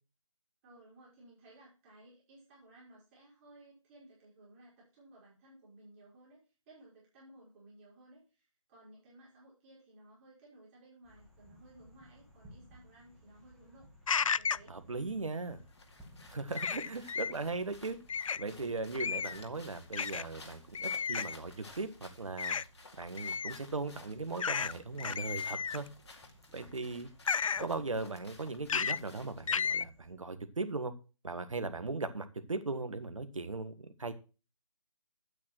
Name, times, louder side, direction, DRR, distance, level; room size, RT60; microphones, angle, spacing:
voice 1, 0.6-13.9 14.4-14.8 15.3-15.5, right 1 dB, 25° right, -6 dB, 5.5 m, -58 dB
sound 1, 11.0-30.1, equal, ahead, 1.9 m, -60 dB
sound 2, 14.1-14.7 16.5-17.3 18.1-18.4 19.0-19.4 19.9-20.2 20.7-21.3 22.4-22.6 23.2-23.6 24.4-24.7 25.0-25.9 27.3-27.7 28.7-29.0 29.5-29.8, left 6 dB, 75° left, 0.4 m, -33 dB
voice 2, 14.7-15.6 16.3-18.0 18.4-22.5 23.0-25.9 26.5-27.1 27.6-30.9 31.2-34.1, right 3 dB, 75° right, 9 dB, 1.6 m, -38 dB
sound 3, 15.4-29.5, left 3 dB, 55° left, 2.3 m, -56 dB
8.8 x 8.5 x 4.5 m, 0.32 s
figure-of-eight pair, 150°, 17 cm